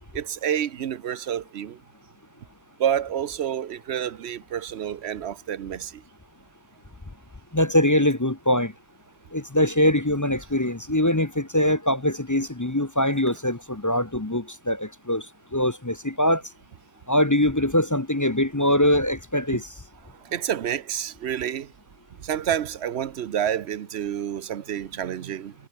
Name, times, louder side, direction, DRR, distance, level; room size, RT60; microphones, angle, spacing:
voice 1, 0.1-1.8 2.8-6.0 20.2-21.7 22.2-25.5, right 9 dB, 75° right, 1.0 m, -28 dB
voice 2, 7.5-8.7 9.3-15.3 15.5-16.4 17.1-19.6, left 1 dB, 20° left, 0.9 m, -22 dB
omnidirectional pair, 1.1 m